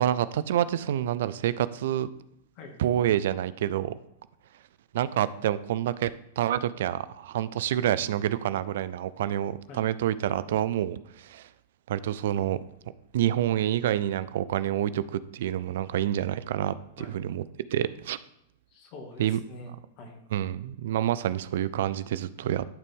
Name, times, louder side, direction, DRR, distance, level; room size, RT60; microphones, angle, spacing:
voice 1, 0.0-2.1 2.8-4.0 4.9-11.5 11.9-12.6 13.1-17.4 17.7-18.2 19.2-19.4 20.3-22.7, right 11 dB, 65° right, 16 dB, 0.3 m, -28 dB
voice 2, 18.7-20.2, left 2 dB, 45° left, 2 dB, 2.0 m, -45 dB
12.0 x 4.0 x 3.6 m, 0.79 s
hypercardioid pair, 110°, 0 cm